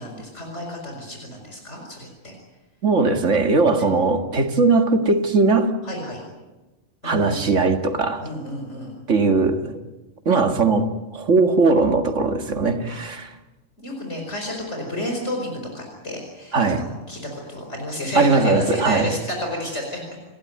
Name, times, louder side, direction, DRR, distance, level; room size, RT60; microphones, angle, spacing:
voice 1, 0.0-2.3 3.8-3.9 5.8-6.2 7.0-7.7 8.2-8.9 12.9-13.0 13.8-20.2, left 1 dB, 60° left, 1 dB, 5.2 m, -31 dB
voice 2, 2.8-5.7 7.0-8.2 9.1-9.8 10.3-13.3 16.5-16.9 18.2-19.1, right 3 dB, 70° right, 6 dB, 2.2 m, -19 dB
29.0 x 16.0 x 9.4 m, 1.1 s
omnidirectional pair, 1.3 m